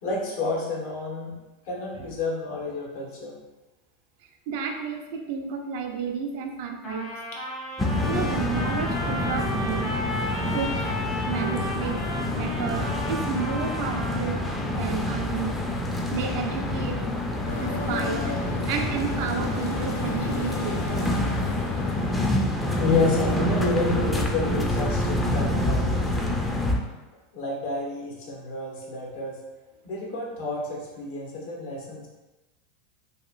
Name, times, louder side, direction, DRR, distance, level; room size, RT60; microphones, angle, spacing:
voice 1, 0.0-1.4 1.7-3.4 22.8-26.0 27.3-29.4 29.8-32.1, left 3 dB, 65° left, -3 dB, 0.8 m, -29 dB
voice 2, 4.5-7.1 8.1-9.9 10.5-10.8 11.3-12.0 12.3-15.6 16.1-17.0 17.6-18.4 18.7-21.1, right 6 dB, 60° right, 3 dB, 0.3 m, -32 dB
Trumpet, 6.8-14.6, left 1 dB, 40° left, 0.9 m, -34 dB
sound 1, 7.8-26.8, left 1 dB, 10° left, 0.4 m, -27 dB
sound 2, 17.5-24.1, left 4 dB, 85° left, 0.4 m, -37 dB
2.8 x 2.4 x 2.4 m, 1.1 s
hypercardioid pair, 100°, 0 cm